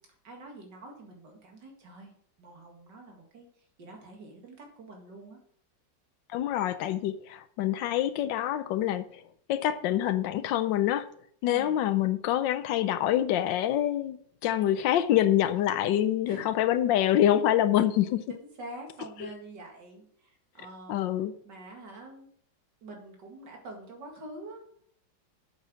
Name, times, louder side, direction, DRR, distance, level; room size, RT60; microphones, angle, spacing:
voice 1, 0.2-2.1 2.4-5.4 11.4-11.7 16.3-16.5 18.3-21.1 21.4-22.3 22.8-24.8, right 2 dB, 70° right, 2.7 m, -46 dB
voice 2, 6.3-9.1 9.5-11.1 11.4-14.2 14.4-18.2 19.2-19.3 20.9-21.3, left 11 dB, 85° left, 1.3 m, -26 dB
8.1 x 7.6 x 6.3 m
omnidirectional pair, 2.0 m